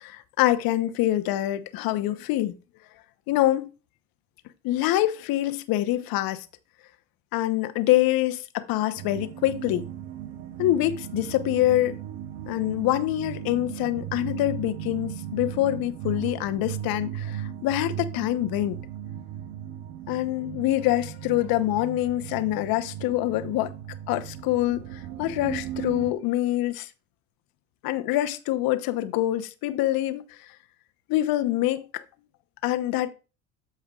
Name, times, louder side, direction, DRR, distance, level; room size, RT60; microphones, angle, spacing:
voice 1, 0.0-2.5 3.3-3.7 4.6-6.5 7.3-9.9 10.6-12.0 12.5-18.8 20.1-23.7 24.1-26.9 27.8-30.2 31.1-32.0 32.6-33.1, left 15 dB, 55° left, 1.0 m, -25 dB
sound 1, 9.0-26.1, right 10 dB, 70° right, 0.9 m, -37 dB
14.0 x 4.6 x 2.4 m
hypercardioid pair, 75°, 43 cm